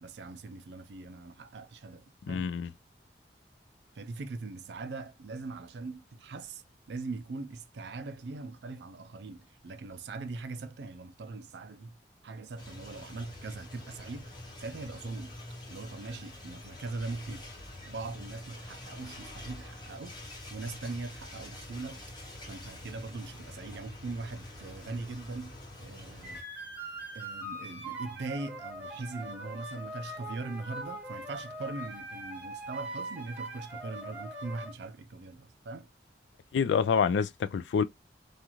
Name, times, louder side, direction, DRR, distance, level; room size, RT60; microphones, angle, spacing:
voice 1, 0.0-2.5 3.9-12.0 12.2-15.4 15.7-17.5 17.8-22.0 22.5-26.5 27.1-35.9, right 3 dB, 75° right, 0.4 m, -41 dB
voice 2, 2.3-2.7 36.5-37.8, left 6 dB, 90° left, 0.3 m, -27 dB
sound 1, 12.6-26.4, left 1 dB, 25° left, 0.8 m, -46 dB
sound 2, 26.2-34.7, right 1 dB, 10° right, 0.7 m, -41 dB
2.5 x 2.4 x 2.9 m
head